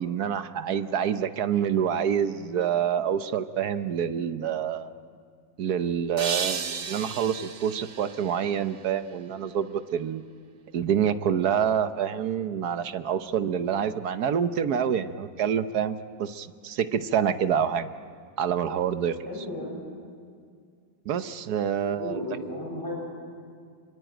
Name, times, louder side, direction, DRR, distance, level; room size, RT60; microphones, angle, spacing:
voice 1, 0.0-4.9 5.6-10.2 10.7-17.9 18.4-19.2 21.1-22.4, right 8 dB, 65° right, 11 dB, 1.3 m, -27 dB
sound 1, 6.2-9.3, right 6 dB, 90° right, 0.4 m, -34 dB
voice 2, 19.3-19.8 21.9-22.9, left 1 dB, 10° right, -3 dB, 7.4 m, -34 dB
26.5 x 23.5 x 9.1 m, 2.1 s
omnidirectional pair, 2.0 m